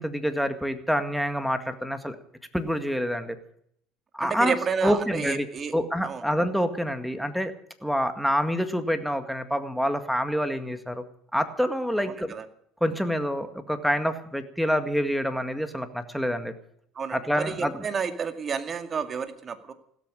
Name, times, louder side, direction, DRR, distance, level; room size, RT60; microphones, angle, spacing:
voice 1, 0.0-2.2 2.5-3.4 4.1-4.5 4.8-5.5 5.7-7.5 7.8-11.0 11.3-12.3 12.8-16.5 17.1-17.9, equal, ahead, 9 dB, 1.9 m, -27 dB
voice 2, 4.2-5.7 6.0-6.2 12.0-12.5 17.0-19.7, right 6 dB, 35° right, 9 dB, 2.1 m, -31 dB
16.0 x 13.5 x 6.3 m, 0.67 s
supercardioid pair, 115°, 0 cm